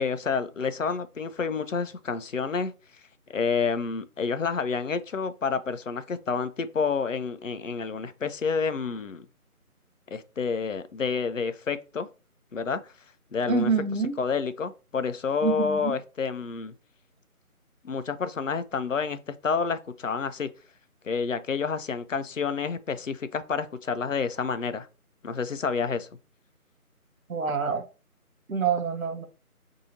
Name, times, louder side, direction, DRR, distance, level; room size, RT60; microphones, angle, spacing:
voice 1, 0.0-2.7 3.3-9.3 10.1-12.1 12.5-12.9 13.3-13.7 14.2-16.7 17.8-20.5 21.0-24.9 25.2-26.1, left 5 dB, 60° left, 0.5 m, -29 dB
voice 2, 13.5-14.2 15.4-15.9 27.3-27.9 28.5-29.3, right 5 dB, 65° right, 0.7 m, -26 dB
2.7 x 2.7 x 4.1 m
figure-of-eight pair, 165°, 44 cm